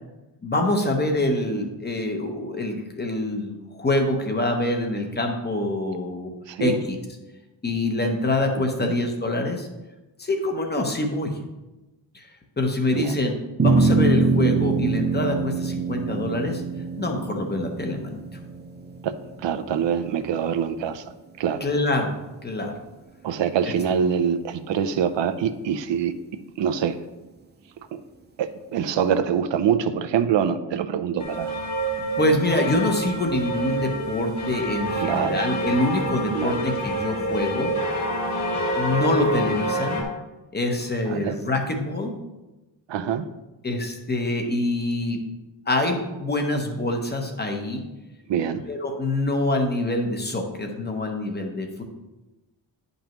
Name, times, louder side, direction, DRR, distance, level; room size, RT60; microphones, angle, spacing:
voice 1, 0.4-6.3 6.6-6.9 7.6-9.7 10.2-11.4 12.1-12.3 12.6-13.3 13.6-16.6 17.0-18.2 21.6-22.1 22.4-22.8 32.2-37.7 38.8-40.0 40.5-42.2 43.6-45.2 45.7-47.8 48.7-51.8, left 1 dB, 25° left, 3 dB, 0.8 m, -25 dB
voice 2, 6.5-6.8 8.6-8.9 12.9-13.2 19.0-21.0 21.4-21.6 23.2-26.2 26.6-27.0 27.9-28.0 28.4-31.5 35.0-35.4 36.3-36.6 41.1-41.4 42.9-43.3 48.3-48.6, right 8 dB, 75° right, 11 dB, 0.6 m, -25 dB
sound 1, 13.6-20.1, right 3 dB, 25° right, 0.5 m, -24 dB
sound 2, 31.2-40.0, right 1 dB, 40° left, 1.6 m, -27 dB
10.0 x 5.4 x 3.0 m, 1.1 s
wide cardioid pair, 180°, 44 cm